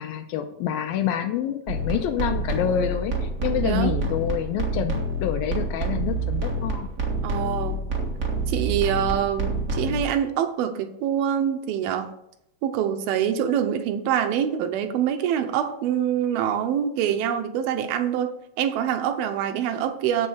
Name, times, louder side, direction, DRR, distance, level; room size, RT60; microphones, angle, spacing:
voice 1, 0.0-6.9, left 9 dB, 80° left, 8 dB, 2.3 m, -27 dB
sound 1, 1.7-10.0, right 2 dB, 60° right, 0.8 m, -27 dB
voice 2, 7.2-7.8 8.5-12.1 12.6-20.3, right 9 dB, 80° right, 7 dB, 2.6 m, -25 dB
7.8 x 7.8 x 6.4 m, 0.78 s
omnidirectional pair, 4.5 m